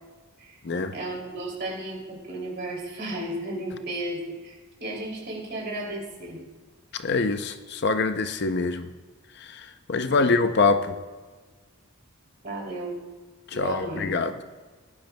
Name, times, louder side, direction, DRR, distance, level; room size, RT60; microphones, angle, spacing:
voice 1, 0.9-6.4 10.0-10.4 12.4-13.0 13.5-14.2, right 1 dB, 50° right, -1 dB, 2.8 m, -34 dB
voice 2, 7.0-8.9 9.5-9.6 9.9-10.9 13.5-14.3, left 3 dB, 50° left, 9 dB, 0.5 m, -24 dB
17.5 x 10.5 x 2.2 m, 1.4 s
head